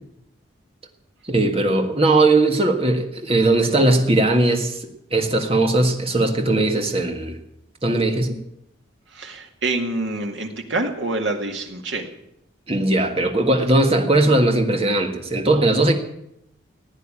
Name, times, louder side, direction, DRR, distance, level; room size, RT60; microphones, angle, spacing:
voice 1, 1.2-7.4 7.8-8.4 12.7-15.9, right 2 dB, 30° right, 4 dB, 1.6 m, -19 dB
voice 2, 9.1-12.1, right 2 dB, 70° right, 3 dB, 2.2 m, -26 dB
16.0 x 9.5 x 8.8 m, 0.80 s
head